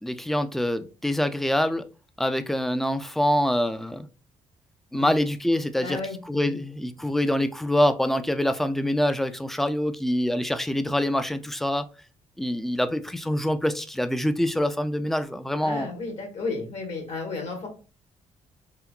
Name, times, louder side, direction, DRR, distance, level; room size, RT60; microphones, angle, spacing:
voice 1, 0.0-1.8 2.2-4.1 4.9-6.0 6.3-11.8 12.4-15.9, left 1 dB, ahead, 11 dB, 0.3 m, -25 dB
voice 2, 5.8-6.6 15.6-17.7, left 3 dB, 60° left, 2 dB, 1.3 m, -33 dB
3.6 x 2.2 x 2.2 m, 0.34 s
cardioid pair, 75°, 12 cm